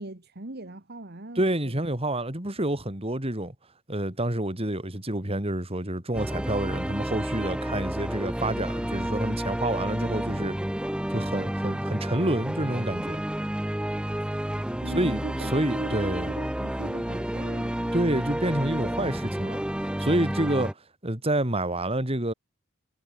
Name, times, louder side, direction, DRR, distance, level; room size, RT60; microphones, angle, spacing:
voice 1, 0.0-1.9 14.8-18.3, right 1 dB, 50° right, 1.9 m, -39 dB
voice 2, 1.3-3.5 3.9-10.6 11.1-13.2 14.9-16.3 17.9-20.7 21.0-22.3, right 1 dB, 25° right, 3.3 m, -28 dB
sound 1, 6.1-20.7, right 1 dB, 5° right, 0.5 m, -30 dB
head